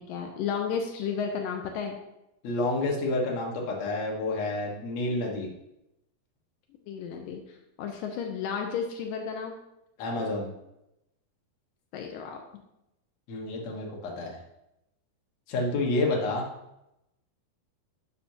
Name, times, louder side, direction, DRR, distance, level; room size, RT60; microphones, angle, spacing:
voice 1, 0.0-2.0 6.9-9.6 11.9-12.4, left 6 dB, 90° left, 2 dB, 1.9 m, -33 dB
voice 2, 2.4-5.5 10.0-10.5 13.3-14.4 15.5-16.5, left 2 dB, 55° left, -1 dB, 2.0 m, -29 dB
11.0 x 7.0 x 2.8 m, 0.87 s
omnidirectional pair, 4.9 m